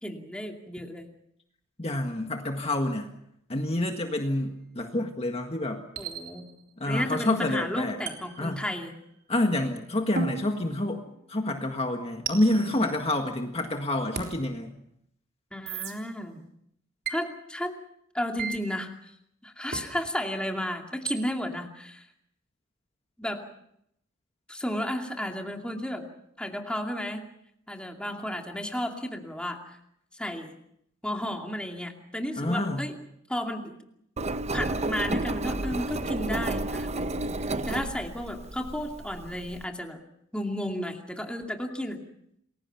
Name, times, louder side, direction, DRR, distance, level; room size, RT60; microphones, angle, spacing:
voice 1, 0.0-1.1 6.0-6.5 6.9-8.9 15.5-16.4 17.1-17.7 18.1-18.9 19.4-22.0 23.2-23.4 24.5-26.0 26.4-27.3 27.7-29.8 30.1-30.5 31.0-32.9 33.3-33.7 34.5-37.2 37.6-40.0 40.3-42.0, equal, 5° left, 2 dB, 2.5 m, -33 dB
voice 2, 1.8-3.1 3.5-5.8 6.8-8.0 8.4-8.6 9.3-11.0 11.3-14.7 32.4-32.9, left 1 dB, 30° left, 4 dB, 1.7 m, -28 dB
sound 1, 4.1-4.3 6.0-6.7 8.1-9.1 10.2-11.4 12.2-13.6 14.2-14.3 15.7-15.9 17.0-17.2 18.4-18.6 19.7-19.9 21.1-21.2, right 6 dB, 50° right, 3.8 m, -37 dB
Engine, 34.2-39.6, right 2 dB, 30° right, 0.9 m, -31 dB
29.0 x 21.5 x 5.9 m, 0.75 s
head